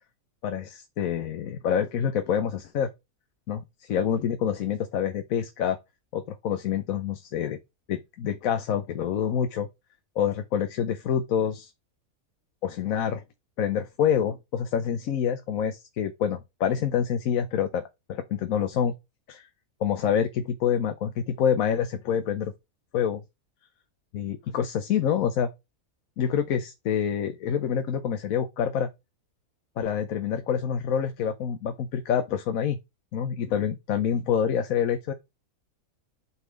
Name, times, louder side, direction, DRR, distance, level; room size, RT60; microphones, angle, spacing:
voice 1, 0.4-2.9 3.5-5.8 6.1-7.6 7.9-9.7 10.2-11.7 12.6-13.2 13.6-18.9 19.3-19.5 19.8-22.5 22.9-23.2 24.1-25.5 26.2-28.9 29.8-32.8 33.1-35.1, left 8 dB, 75° left, 1.2 m, -27 dB
8.2 x 4.1 x 5.1 m
omnidirectional pair, 1.5 m